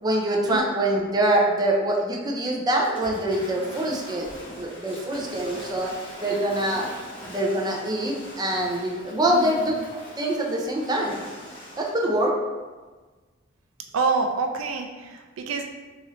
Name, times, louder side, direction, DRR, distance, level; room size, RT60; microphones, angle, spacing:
voice 1, 0.0-5.9 6.2-6.9 7.3-11.1 11.7-12.3, right 1 dB, 20° right, -1 dB, 0.4 m, -24 dB
Waves surf / Splash splatter, 2.8-12.1, equal, 25° left, 1.0 m, -41 dB
voice 2, 9.3-9.6 13.9-15.6, right 4 dB, 85° right, 4 dB, 0.4 m, -27 dB
4.0 x 2.5 x 3.0 m, 1.3 s
head